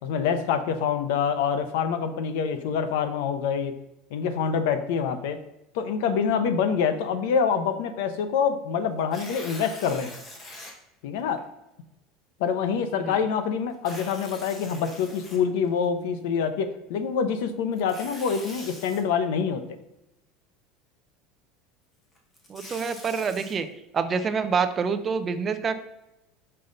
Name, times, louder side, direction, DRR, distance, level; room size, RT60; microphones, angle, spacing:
voice 1, 0.0-3.7 4.1-5.4 5.7-10.1 11.0-11.4 12.4-19.6, left 6 dB, 75° left, 10 dB, 0.8 m, -26 dB
Tearing, 9.0-10.7 11.4-11.5 13.7-15.8 17.7-19.0 22.2-23.6, left 1 dB, 20° left, 1.3 m, -43 dB
voice 2, 22.5-23.7 23.9-25.8, right 5 dB, 20° right, 10 dB, 0.5 m, -27 dB
6.5 x 5.5 x 4.0 m, 0.92 s
cardioid pair, 165°, 0 cm